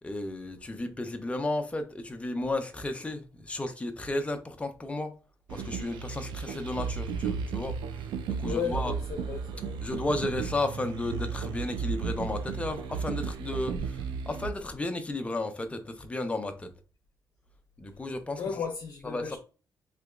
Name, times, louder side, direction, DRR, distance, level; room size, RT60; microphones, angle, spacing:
voice 1, 0.0-5.1 5.5-7.7 8.4-8.9 9.8-16.7 17.8-18.4 19.0-19.4, left 2 dB, 15° left, 0.6 m, -33 dB
sound 1, 5.5-14.5, right 6 dB, 85° right, 0.4 m, -34 dB
voice 2, 8.4-9.8 18.4-19.4, left 6 dB, 65° left, 0.7 m, -35 dB
3.4 x 2.9 x 2.3 m
cardioid pair, 85°, 8 cm